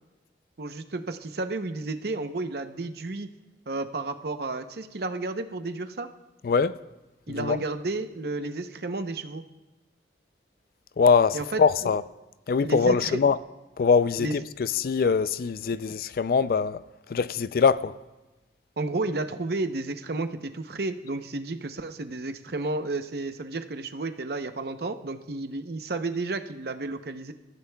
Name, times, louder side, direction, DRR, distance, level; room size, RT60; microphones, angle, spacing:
voice 1, 0.6-3.3 3.7-6.1 7.3-9.4 11.3-11.9 12.6-13.2 14.2-14.4 18.8-27.3, right 2 dB, 60° right, 0.7 m, -32 dB
voice 2, 6.4-6.8 7.3-7.6 11.0-12.0 12.5-13.4 13.8-16.8 17.1-18.0, left 5 dB, 55° left, 0.4 m, -23 dB
25.5 x 14.0 x 2.3 m
head